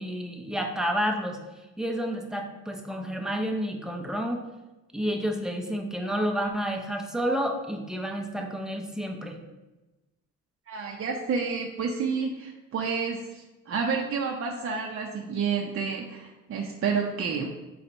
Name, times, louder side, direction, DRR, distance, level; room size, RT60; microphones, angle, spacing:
voice 1, 0.0-1.4 1.8-4.4 4.9-9.4, equal, ahead, 2 dB, 0.5 m, -30 dB
voice 2, 10.7-17.5, right 5 dB, 50° right, 0 dB, 0.5 m, -30 dB
3.8 x 2.8 x 4.4 m, 1.1 s
cardioid pair, 90°, 30 cm